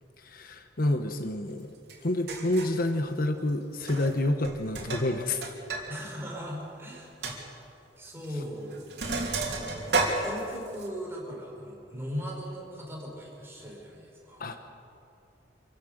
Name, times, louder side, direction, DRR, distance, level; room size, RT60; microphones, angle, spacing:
voice 1, 0.2-1.7 2.0-5.4 14.4-14.6, left 1 dB, 55° left, 7 dB, 1.1 m, -28 dB
Sink (filling or washing), 1.9-2.0 2.3-2.8 3.8-4.2 4.4-5.9 6.2-6.3 6.7-6.8 7.2-7.4 8.2-8.4 8.7-10.9, right 3 dB, 65° right, 3.2 m, -31 dB
voice 2, 5.9-7.6 8.0-9.8 10.2-14.5, equal, 15° right, -3 dB, 5.1 m, -39 dB
27.0 x 15.5 x 6.7 m, 2.7 s
head